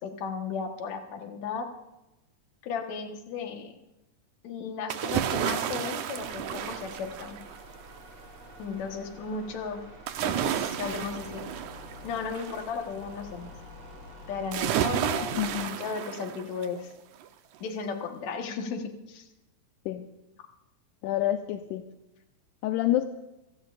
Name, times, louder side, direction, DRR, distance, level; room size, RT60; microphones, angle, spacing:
voice 1, 0.0-1.7 2.6-3.7 4.4-7.4 8.6-9.8 10.2-11.4 12.0-13.5 14.3-16.9 17.6-19.3, left 5 dB, 65° left, 4 dB, 2.5 m, -35 dB
sound 1, 4.9-7.7 10.1-12.7 14.5-16.8 17.2-17.3, right 10 dB, 80° right, 2.2 m, -31 dB
sound 2, 6.1-15.6, left 1 dB, 60° right, 5.4 m, -47 dB
voice 2, 15.4-15.8 19.9-20.1 21.0-21.9 22.6-23.1, left 13 dB, 80° left, 6 dB, 2.1 m, -28 dB
27.5 x 17.0 x 2.5 m, 0.97 s
omnidirectional pair, 3.6 m